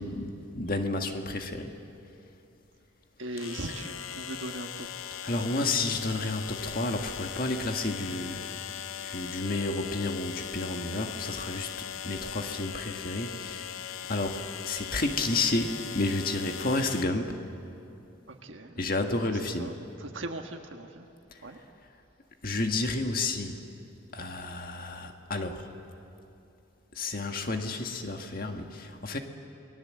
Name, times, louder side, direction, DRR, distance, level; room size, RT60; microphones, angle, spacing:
voice 1, 0.0-1.7 5.2-8.5 9.0-13.7 14.1-17.4 18.8-19.7 22.4-23.6 24.1-25.7 27.0-29.2, left 2 dB, 45° left, 4 dB, 1.8 m, -31 dB
sound 1, 1.3-1.4 3.4-17.0, left 10 dB, 85° left, 0.6 m, -39 dB
voice 2, 3.2-5.5 18.3-18.9 19.3-19.7 20.0-21.1 21.4-21.6, right 2 dB, 70° right, 3 dB, 1.5 m, -39 dB
28.5 x 21.0 x 7.8 m, 2.8 s
head